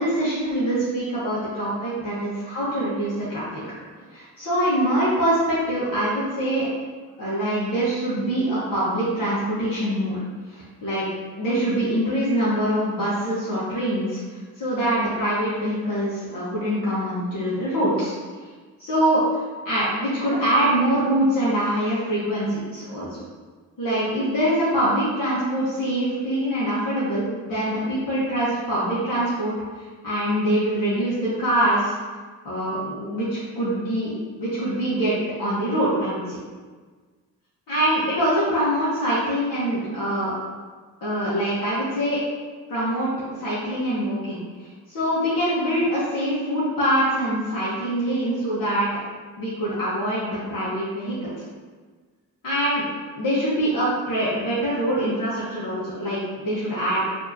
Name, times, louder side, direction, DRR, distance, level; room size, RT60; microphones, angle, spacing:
voice 1, 0.0-3.6 4.1-6.7 7.2-10.2 10.5-11.1 11.3-18.1 18.8-19.2 19.6-23.2 23.8-29.5 30.0-31.9 32.4-36.4 37.7-40.3 41.0-42.2 42.7-43.1 43.4-44.4 44.9-48.9 49.4-51.3 52.4-52.8 53.1-57.0, right 1 dB, 55° left, -10 dB, 1.4 m, -24 dB
4.5 x 2.9 x 2.7 m, 1.4 s
supercardioid pair, 45°, 41 cm